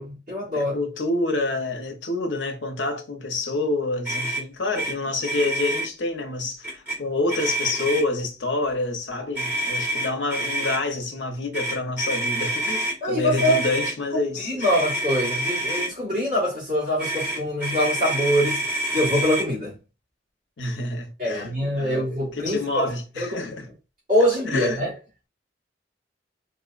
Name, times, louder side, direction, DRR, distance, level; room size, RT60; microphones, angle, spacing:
voice 1, 0.0-0.8 13.0-13.6 14.4-19.7 21.2-22.9 23.2-23.5 24.1-24.9, equal, 50° right, 1.6 m, -24 dB
voice 2, 0.5-14.5 20.6-23.7 24.5-24.8, left 2 dB, 90° left, 0.7 m, -28 dB
Motor vehicle (road), 4.0-4.4 4.7-4.9 5.2-5.9 6.6-7.0 7.3-8.2 9.3-10.8 11.5-13.0 13.4-13.9 14.6-15.9 17.0-19.5, right 1 dB, 10° right, 1.0 m, -27 dB
4.1 x 2.1 x 2.4 m
head